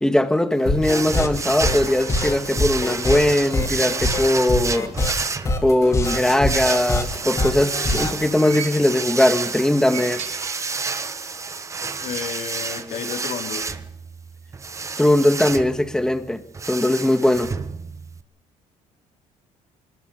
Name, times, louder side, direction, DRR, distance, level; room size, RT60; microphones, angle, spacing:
voice 1, 0.0-4.9 5.6-10.2 15.0-16.4 16.7-17.5, left 1 dB, 5° left, 1.8 m, -20 dB
sound 1, 0.7-8.2, left 2 dB, 20° left, 3.8 m, -24 dB
sound 2, 0.8-18.2, right 4 dB, 20° right, 1.2 m, -30 dB
sound 3, 8.1-9.2 9.7-11.1 11.4-11.5 12.6-12.7, right 8 dB, 60° right, 3.8 m, -39 dB
voice 2, 12.0-13.7, left 7 dB, 65° left, 4.4 m, -31 dB
23.0 x 20.0 x 6.7 m
cardioid pair, 145°, 14 cm